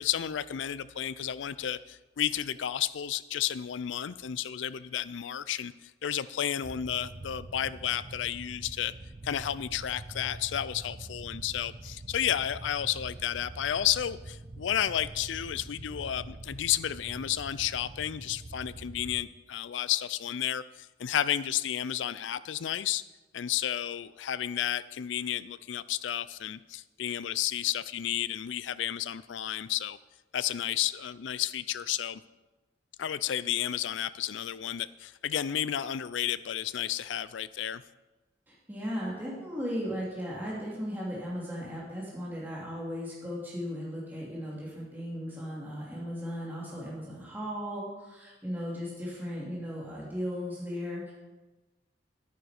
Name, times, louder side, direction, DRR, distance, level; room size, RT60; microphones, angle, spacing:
voice 1, 0.0-5.7 6.0-8.9 9.2-23.0 23.3-30.0 30.3-32.2 33.0-37.8, left 10 dB, 85° left, 16 dB, 0.4 m, -32 dB
sound 1, 6.6-19.2, right 2 dB, 35° right, 0.5 m, -45 dB
voice 2, 38.5-51.1, equal, 10° right, -6 dB, 2.6 m, -36 dB
10.5 x 9.3 x 4.9 m, 1.1 s
head